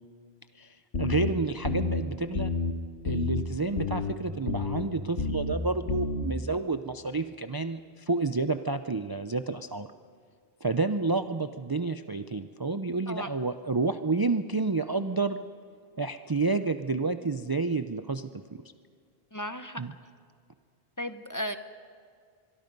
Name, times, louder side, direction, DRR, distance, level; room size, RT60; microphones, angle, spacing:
voice 1, 0.5-2.5 3.0-9.9 10.6-15.4 16.0-18.6 19.8-19.9, right 3 dB, 30° right, 9 dB, 0.5 m, -30 dB
sound 1, 0.9-1.3 1.6-2.0 2.3-2.7 3.0-3.4 3.8-4.1 4.5-4.8 5.2-5.5 5.9-6.2, left 4 dB, 75° left, 1.8 m, -29 dB
voice 2, 19.3-19.8 21.0-21.6, equal, 20° left, 9 dB, 0.8 m, -34 dB
25.0 x 22.5 x 5.4 m, 2.2 s
omnidirectional pair, 1.0 m